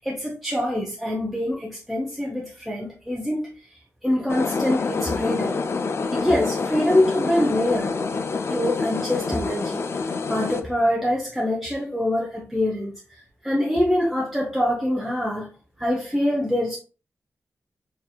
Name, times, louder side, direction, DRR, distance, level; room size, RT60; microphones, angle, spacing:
voice 1, 0.0-3.7 4.0-5.6 6.1-8.0 8.5-9.8 10.3-15.5 15.8-16.8, left 1 dB, ahead, 0.8 m, -24 dB
sound 1, 4.3-10.6, left 4 dB, 50° left, 0.4 m, -27 dB
4.7 x 3.5 x 2.3 m
wide cardioid pair, 100°, 5 cm